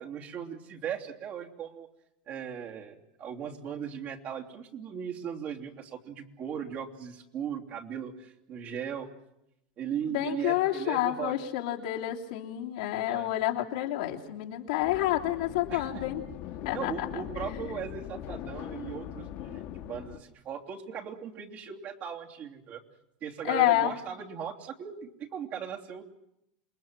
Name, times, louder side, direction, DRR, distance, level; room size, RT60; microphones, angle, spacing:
voice 1, 0.0-1.9 2.3-9.1 9.8-11.4 13.1-13.3 15.7-16.0 16.7-22.8 23.2-26.0, right 8 dB, 45° right, 1 dB, 3.1 m, -38 dB
voice 2, 10.1-16.2 16.6-17.2 23.4-23.9, left 14 dB, 80° left, -1 dB, 3.3 m, -29 dB
sound 1, 14.8-20.2, left 11 dB, 55° left, 2.2 m, -40 dB
28.0 x 21.0 x 7.6 m, 0.82 s
supercardioid pair, 125°, 4 cm